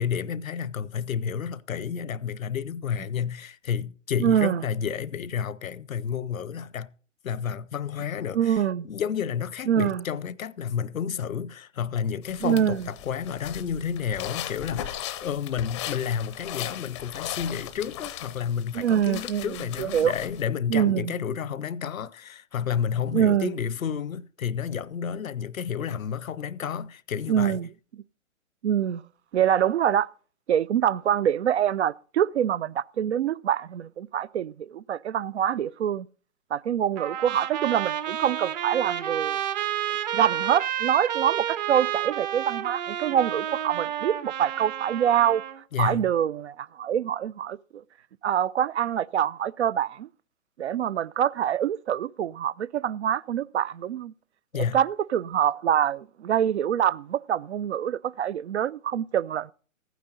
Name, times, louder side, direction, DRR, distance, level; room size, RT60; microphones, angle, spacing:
voice 1, 0.0-6.9 7.2-27.6 45.7-46.1 54.5-54.8, left 8 dB, 75° left, 0.8 m, -31 dB
voice 2, 4.2-4.6 8.3-8.9 9.7-10.0 12.4-12.8 18.7-20.1 20.7-21.1 23.1-23.5 27.3-27.7 28.6-29.0 29.3-30.1 30.5-36.1 36.5-39.4 40.1-45.4 45.8-47.8 48.2-50.1 50.6-54.1 54.5-59.5, right 9 dB, 55° right, 0.5 m, -25 dB
sound 1, 12.2-20.4, left 12 dB, 20° left, 0.6 m, -38 dB
Trumpet, 37.0-45.6, right 11 dB, 35° right, 0.9 m, -30 dB
15.0 x 9.3 x 4.0 m
figure-of-eight pair, 130°, 41 cm